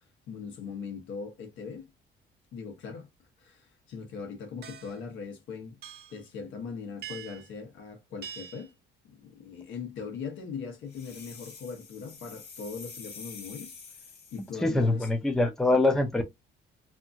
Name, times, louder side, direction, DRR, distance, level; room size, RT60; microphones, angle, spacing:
voice 1, 0.3-1.9 2.5-3.1 3.4-5.8 6.1-8.7 9.2-13.7 14.3-15.1, left 5 dB, 75° left, 1.1 m, -40 dB
sound 1, 4.6-5.0 5.8-6.2 7.0-7.5 8.2-8.7, right 9 dB, 55° right, 0.7 m, -43 dB
sound 2, 10.9-14.6, left 5 dB, 55° left, 1.1 m, -47 dB
voice 2, 14.6-16.2, left 2 dB, ahead, 0.5 m, -24 dB
2.8 x 2.6 x 2.3 m
cardioid pair, 125°, 20 cm